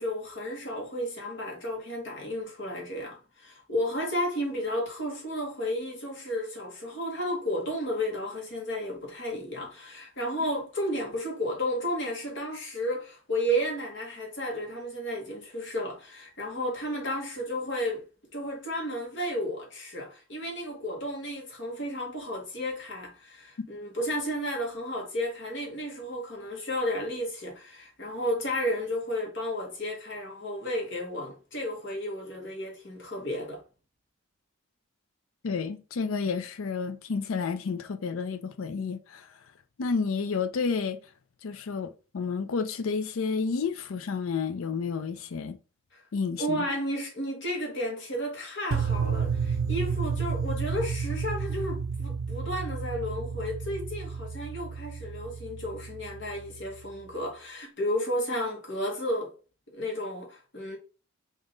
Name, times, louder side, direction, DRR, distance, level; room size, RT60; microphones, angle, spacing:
voice 1, 0.0-18.0 18.3-33.6 45.9-46.0 46.4-59.3 59.7-60.8, equal, 55° left, 1.3 m, -32 dB
voice 2, 35.4-39.3 39.8-41.0 41.4-45.6 46.1-46.7, left 5 dB, 75° left, 0.5 m, -30 dB
sound 1, 48.7-56.8, right 5 dB, 75° right, 0.5 m, -31 dB
3.6 x 2.5 x 3.8 m
head